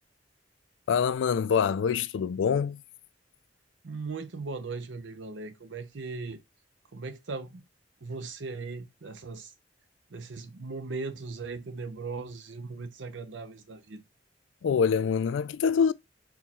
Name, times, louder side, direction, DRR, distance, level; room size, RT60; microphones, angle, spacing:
voice 1, 0.9-2.8 14.6-15.9, left 6 dB, 80° left, 0.3 m, -25 dB
voice 2, 3.8-6.4 6.9-7.6 8.0-9.5 10.1-14.0, right 4 dB, 75° right, 0.7 m, -38 dB
4.6 x 2.3 x 4.1 m
head